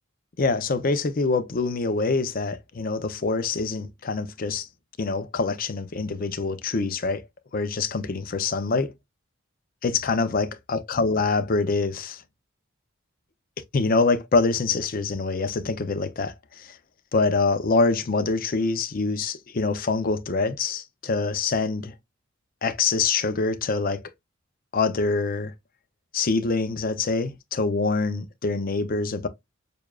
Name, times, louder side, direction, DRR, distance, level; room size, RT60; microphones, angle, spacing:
voice 1, 0.4-4.7 5.0-7.2 7.5-8.9 9.8-12.2 13.7-16.7 17.1-21.9 22.6-24.0 24.7-25.5 26.1-29.3, left 4 dB, 45° left, 0.5 m, -25 dB
6.7 x 2.3 x 2.3 m
head